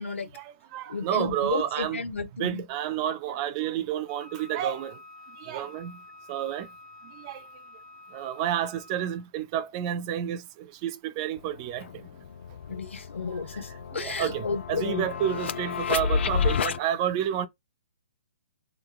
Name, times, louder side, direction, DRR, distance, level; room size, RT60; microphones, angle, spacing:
voice 1, 0.3-2.0 2.4-5.0 5.4-6.0 6.3-6.7 7.0-7.5 8.1-12.1 13.2-17.5, right 10 dB, 30° right, 0.3 m, -30 dB
voice 2, 0.9-2.6 12.7-15.1, left 4 dB, 85° left, 0.9 m, -33 dB
Wind instrument woodwind instrument, 4.1-9.3, left 2 dB, 15° left, 0.9 m, -49 dB
sound 1, 11.4-11.5 11.8-16.8, left 6 dB, 65° left, 0.3 m, -30 dB
2.9 x 2.2 x 2.3 m
hypercardioid pair, 140°, 7 cm